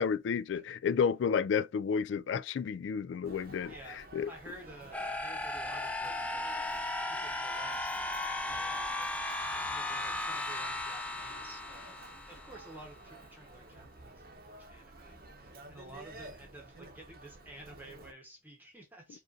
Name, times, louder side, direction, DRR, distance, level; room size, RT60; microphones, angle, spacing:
voice 1, 0.0-3.7 4.1-4.3, left 6 dB, 80° left, 0.3 m, -31 dB
Human voice, 3.2-18.1, right 2 dB, 50° right, 0.8 m, -52 dB
voice 2, 3.7-6.7 7.0-8.9 9.6-19.2, right 1 dB, 10° right, 1.0 m, -52 dB
sound 1, 4.9-12.8, left 2 dB, 10° left, 0.5 m, -36 dB
5.1 x 2.5 x 2.5 m
head